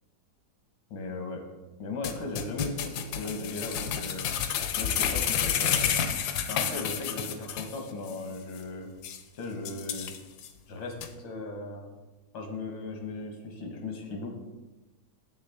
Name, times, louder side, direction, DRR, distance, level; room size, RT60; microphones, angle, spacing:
voice 1, 0.9-1.5 1.8-4.2 4.8-6.0 6.5-8.9 9.3-10.2 10.7-11.9 12.3-14.3, left 3 dB, 90° left, 3 dB, 1.9 m, -37 dB
sound 1, 2.0-7.8 8.1-8.2 8.6-8.7 9.0-9.2 9.7-10.5 11.0-11.1, left 8 dB, 70° left, 1.0 m, -30 dB
7.1 x 6.8 x 3.3 m, 1.1 s
omnidirectional pair, 2.1 m